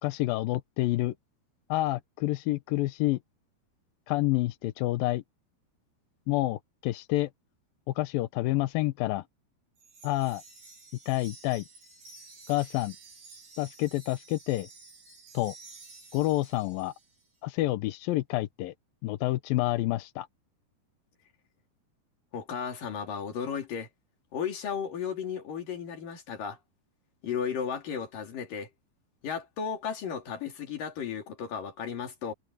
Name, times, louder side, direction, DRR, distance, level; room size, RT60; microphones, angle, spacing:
voice 1, 0.0-1.1 1.7-3.2 4.1-5.2 6.3-7.3 8.0-9.2 10.0-10.4 11.1-11.6 12.5-13.0 13.6-14.7 15.3-15.5 16.1-16.9 17.4-18.7 19.0-20.3, left 17 dB, 80° left, 2.4 m, -28 dB
Wind chime, 9.8-17.3, right 3 dB, 60° right, 9.7 m, -51 dB
voice 2, 22.3-23.9 24.3-26.6 27.2-28.7 29.2-32.3, left 7 dB, 60° left, 4.7 m, -34 dB
omnidirectional pair, 4.4 m